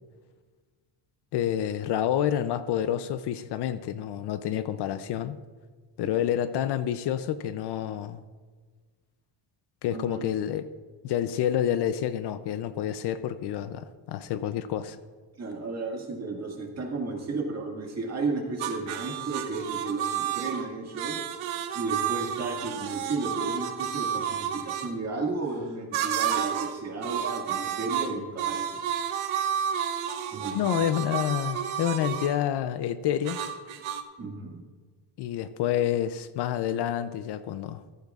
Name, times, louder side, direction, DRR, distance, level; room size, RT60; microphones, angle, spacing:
voice 1, 1.3-5.4 6.0-8.2 9.8-10.7 11.0-15.0 30.5-33.4 35.2-37.8, left 10 dB, 55° left, 12 dB, 0.5 m, -28 dB
voice 2, 9.9-10.2 15.4-21.2 21.7-28.8 30.3-30.6 34.2-34.6, right 3 dB, 30° right, 0 dB, 1.9 m, -33 dB
sound 1, 18.6-24.9 25.9-26.8 27.0-32.4 33.3-34.0, right 9 dB, 75° right, 1.0 m, -31 dB
15.0 x 13.0 x 2.4 m, 1.5 s
cardioid pair, 155°, 48 cm